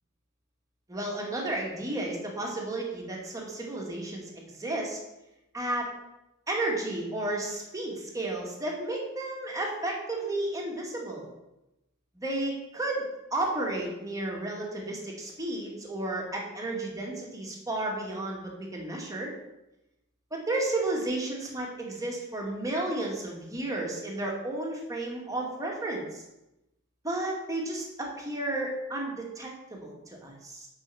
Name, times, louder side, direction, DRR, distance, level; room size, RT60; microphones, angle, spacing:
voice 1, 0.9-5.0 5.5-5.9 6.5-11.3 12.1-13.1 13.3-19.3 20.3-26.2 27.0-30.7, right 2 dB, 15° right, -2 dB, 2.3 m, -32 dB
8.1 x 5.7 x 7.0 m, 0.92 s
head